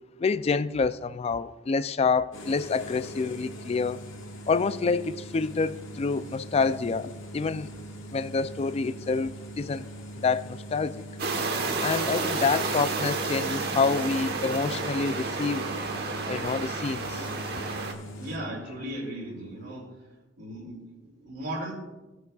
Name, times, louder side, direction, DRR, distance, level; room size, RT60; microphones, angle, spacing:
voice 1, 0.2-4.0 4.5-7.7 8.1-9.9 10.2-11.0 11.8-15.7 16.2-17.3, left 4 dB, 30° left, 0.3 m, -27 dB
sound 1, 2.3-18.4, equal, 80° left, 1.4 m, -41 dB
sound 2, 11.2-17.9, right 3 dB, 50° right, 1.1 m, -31 dB
voice 2, 18.2-19.9 20.4-21.7, right 1 dB, 70° right, 2.7 m, -37 dB
17.0 x 7.9 x 2.3 m
head